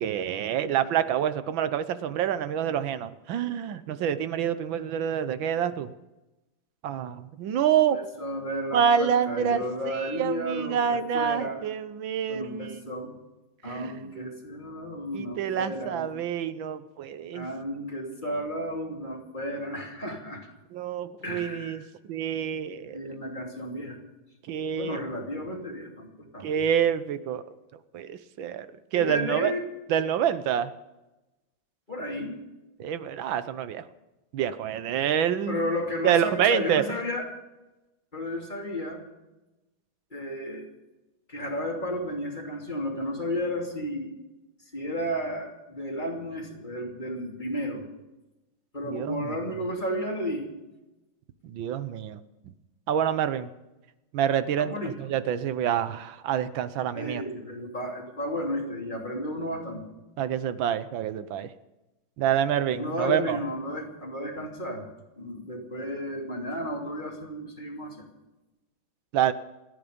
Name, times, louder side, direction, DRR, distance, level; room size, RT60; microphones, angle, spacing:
voice 1, 0.0-5.9 6.8-8.0 8.7-12.9 13.6-14.0 15.1-17.5 20.7-21.8 22.1-23.0 24.5-25.0 26.4-27.4 27.9-28.7 28.9-29.5 29.9-30.7 32.8-33.8 34.3-35.6 36.0-36.8 48.9-49.4 51.4-52.2 52.9-53.5 54.1-54.7 55.0-57.2 60.2-61.5 62.2-63.4 69.1-69.3, right 9 dB, 75° right, 13 dB, 1.6 m, -27 dB
voice 2, 7.9-11.6 12.3-13.1 13.6-16.1 17.3-20.5 21.2-21.9 22.9-24.0 24.7-26.6 28.9-29.6 31.9-32.4 35.5-37.3 38.1-39.0 40.1-40.6 41.3-44.1 44.7-47.8 48.7-50.5 54.6-54.9 56.9-59.8 62.7-64.8 65.2-68.0, equal, 20° left, 0 dB, 2.9 m, -33 dB
27.5 x 9.8 x 5.2 m, 1.0 s
omnidirectional pair, 2.2 m